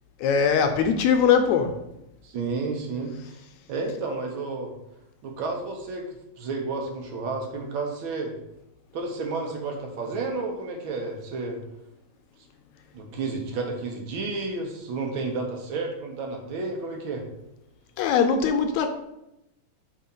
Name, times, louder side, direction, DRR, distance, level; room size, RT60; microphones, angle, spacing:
voice 1, 0.2-1.8 18.0-18.9, left 6 dB, 80° left, 6 dB, 1.8 m, -21 dB
voice 2, 2.2-3.1 3.7-4.7 5.2-8.3 8.9-11.6 12.9-17.2, right 3 dB, 75° right, 2 dB, 1.1 m, -31 dB
5.1 x 4.0 x 5.3 m, 0.87 s
omnidirectional pair, 3.4 m